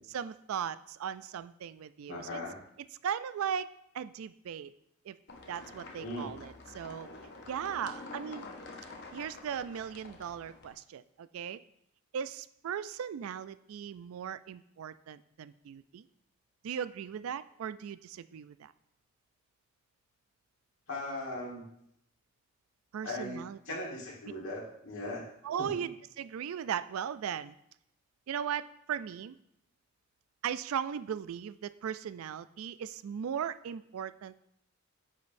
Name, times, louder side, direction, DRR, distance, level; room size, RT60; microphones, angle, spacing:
voice 1, 0.1-2.4 3.0-4.7 5.1-5.2 5.5-7.1 7.5-8.5 9.1-11.6 12.1-16.1 16.6-18.7 22.9-23.6 25.4-27.5 28.3-29.4 30.4-34.4, right 8 dB, 85° right, 15 dB, 0.3 m, -38 dB
voice 2, 2.1-2.6 6.0-6.4 20.9-21.6 23.0-25.3 25.6-25.8, left 1 dB, 75° left, -3 dB, 1.6 m, -39 dB
sound 1, 5.3-10.7, left 3 dB, 50° left, 0.7 m, -48 dB
9.3 x 5.1 x 2.6 m, 0.73 s
head